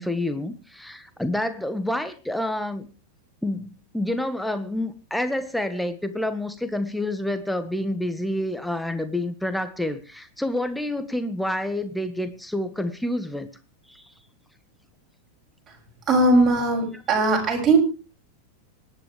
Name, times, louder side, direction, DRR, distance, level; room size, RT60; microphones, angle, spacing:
voice 1, 0.0-2.9 3.4-13.5 13.9-14.0, left 1 dB, ahead, 11 dB, 1.5 m, -28 dB
voice 2, 16.1-17.8, right 2 dB, 20° right, -1 dB, 6.9 m, -19 dB
25.5 x 10.5 x 3.3 m, 0.32 s
figure-of-eight pair, 90°, 0 cm